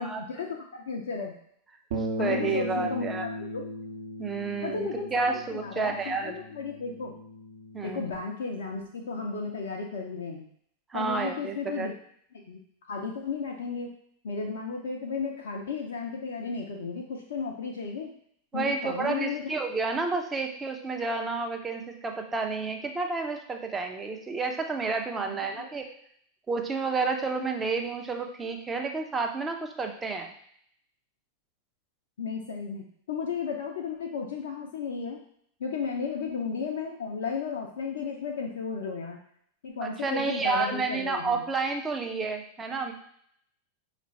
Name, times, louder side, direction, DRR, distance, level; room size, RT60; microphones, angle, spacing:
voice 1, 0.0-1.3 2.2-3.1 3.5-3.7 4.6-7.2 7.8-10.4 10.9-11.9 12.3-12.6 12.9-13.9 14.2-18.1 18.5-19.4 25.2-25.7 32.2-35.2 35.6-39.2 39.6-41.4, left 5 dB, 60° left, 1 dB, 0.5 m, -34 dB
Bass guitar, 1.9-8.2, equal, 55° right, 0.8 m, -37 dB
voice 2, 2.2-3.3 4.2-6.4 7.7-8.0 10.9-11.9 18.5-25.9 26.5-30.3 39.8-42.9, right 4 dB, 15° right, 4 dB, 0.6 m, -30 dB
5.1 x 2.4 x 3.2 m, 0.66 s
figure-of-eight pair, 90°, 0 cm